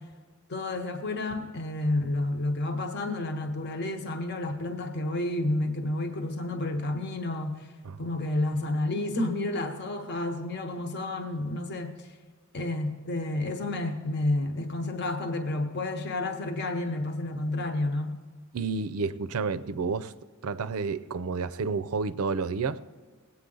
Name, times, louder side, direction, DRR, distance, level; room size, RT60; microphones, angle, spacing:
voice 1, 0.5-7.7 8.0-12.1 12.5-18.2, left 2 dB, 50° left, 1.0 m, -30 dB
voice 2, 18.5-20.1 20.4-22.9, right 4 dB, 80° right, 0.5 m, -30 dB
19.0 x 8.7 x 3.9 m
head